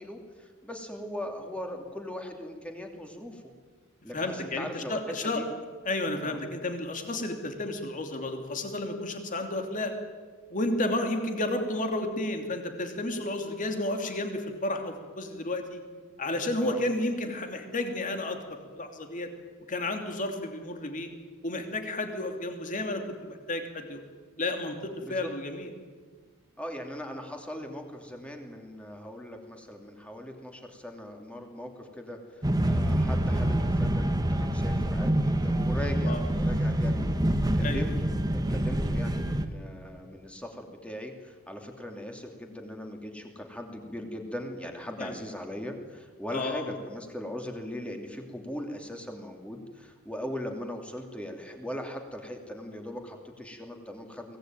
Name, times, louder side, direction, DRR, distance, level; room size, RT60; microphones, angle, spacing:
voice 1, 0.0-3.4 4.0-5.5 6.2-6.4 16.6-16.8 25.0-25.3 26.6-37.0 37.5-54.4, left 1 dB, 5° left, 3 dB, 2.9 m, -39 dB
voice 2, 4.1-5.4 5.8-9.9 10.5-15.8 16.2-19.3 19.7-21.1 21.4-24.0 24.4-25.7 36.1-36.2 37.6-37.8 45.0-45.2 46.3-46.7, left 2 dB, 40° left, 5 dB, 3.0 m, -32 dB
sound 1, 32.4-39.5, right 1 dB, 20° right, 1.4 m, -26 dB
24.0 x 18.5 x 9.2 m, 1.5 s
head